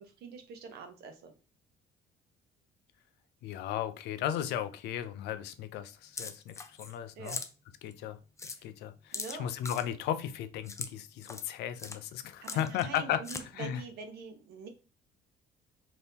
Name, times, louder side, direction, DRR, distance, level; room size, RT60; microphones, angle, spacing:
voice 1, 0.0-1.3 7.2-7.4 8.5-8.7 9.1-9.5 12.4-14.7, right 5 dB, 70° right, 0.8 m, -45 dB
voice 2, 3.4-7.4 7.8-8.2 8.4-13.2 13.5-13.8, left 10 dB, 80° left, 0.5 m, -35 dB
sound 1, 6.2-7.0 7.2-7.5 7.9-8.0 8.4-8.6 9.1-9.8 10.7-10.9 11.2-11.5 11.8-12.0 12.4-13.0 13.2-13.4, left 4 dB, 15° left, 0.4 m, -40 dB
2.8 x 2.7 x 3.5 m
cardioid pair, 110°, 17 cm